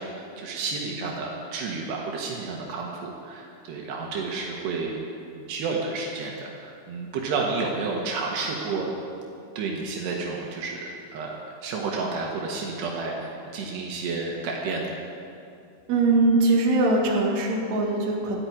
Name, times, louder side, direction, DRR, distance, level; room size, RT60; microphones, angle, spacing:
voice 1, 0.0-8.9 9.6-11.3 11.6-14.9, right 4 dB, 80° right, -1 dB, 3.6 m, -31 dB
voice 2, 15.9-18.4, right 2 dB, 50° right, -2 dB, 2.8 m, -21 dB
14.0 x 8.9 x 9.4 m, 2.6 s
omnidirectional pair, 4.7 m